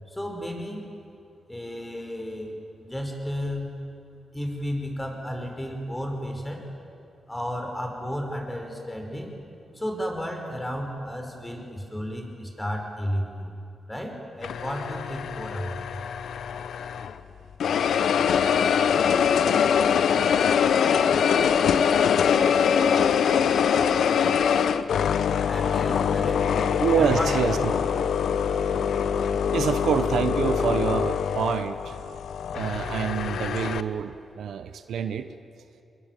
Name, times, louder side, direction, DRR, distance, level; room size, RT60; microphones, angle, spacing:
voice 1, 0.1-0.8 1.5-3.7 4.3-6.6 7.3-9.3 9.7-13.5 13.9-15.8 25.5-26.7 27.0-27.6, equal, 10° left, 2 dB, 5.1 m, -33 dB
sound 1, 14.4-17.2 17.6-33.8, left 7 dB, 85° left, 0.8 m, -23 dB
voice 2, 26.8-27.7 29.5-32.2 32.5-35.3, right 7 dB, 90° right, 10 dB, 0.9 m, -27 dB
25.0 x 21.5 x 9.2 m, 2.6 s
cardioid pair, 80°, 0 cm